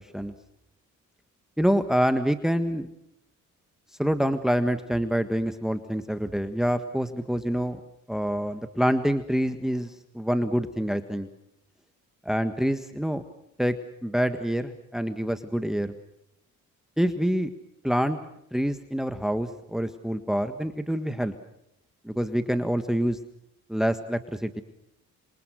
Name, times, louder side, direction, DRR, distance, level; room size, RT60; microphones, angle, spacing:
voice 1, 1.6-2.9 4.0-7.8 8.1-11.3 12.2-13.2 13.6-13.7 14.0-15.9 17.0-17.5 17.8-18.2 18.5-21.3 22.0-23.2 23.7-24.6, equal, ahead, 9 dB, 1.6 m, -26 dB
27.0 x 24.0 x 6.4 m, 0.77 s
cardioid pair, 90°, 30 cm